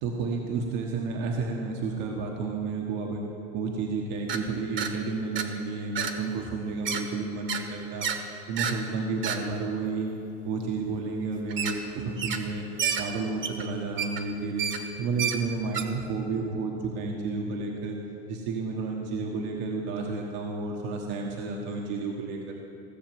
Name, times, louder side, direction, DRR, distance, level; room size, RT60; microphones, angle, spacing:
voice 1, 0.0-3.2 3.5-8.1 8.5-10.1 10.4-12.6 13.0-17.9 18.3-22.5, right 4 dB, 60° right, 0 dB, 1.4 m, -31 dB
sound 1, 4.3-4.4 4.8-4.9 5.3-5.5 5.9-6.1 6.5-7.0 7.5-7.6 8.0-8.2 8.6-8.8 9.2-9.4 11.5-11.8 12.2-12.5 12.8-15.8, right 7 dB, 35° right, 1.3 m, -30 dB
16.0 x 6.6 x 7.5 m, 2.7 s
supercardioid pair, 110°, 33 cm